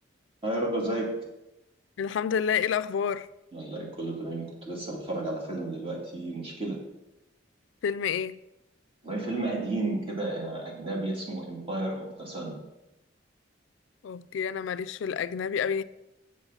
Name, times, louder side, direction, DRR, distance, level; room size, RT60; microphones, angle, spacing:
voice 1, 0.4-1.1 3.5-6.8 9.0-12.6, right 2 dB, 30° right, 2.2 m, -32 dB
voice 2, 2.0-3.3 7.8-8.4 14.0-15.8, left 7 dB, 75° left, 0.3 m, -29 dB
7.4 x 7.1 x 5.6 m
head